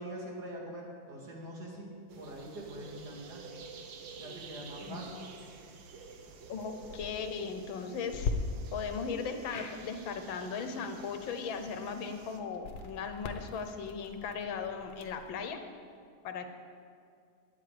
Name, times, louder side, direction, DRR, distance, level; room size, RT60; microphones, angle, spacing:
voice 1, 0.0-3.4 4.2-5.1, right 1 dB, 55° right, -2 dB, 2.9 m, -43 dB
sound 1, 2.1-12.4, right 4 dB, 80° right, 1.8 m, -50 dB
voice 2, 6.5-8.3 8.7-15.6 16.2-16.5, left 5 dB, 90° left, 7 dB, 1.7 m, -37 dB
sound 2, 6.7-7.1 8.1-8.3 9.4-9.8 12.5-15.3, left 5 dB, 60° left, 1.5 m, -40 dB
16.0 x 10.0 x 5.1 m, 2.3 s
omnidirectional pair, 2.1 m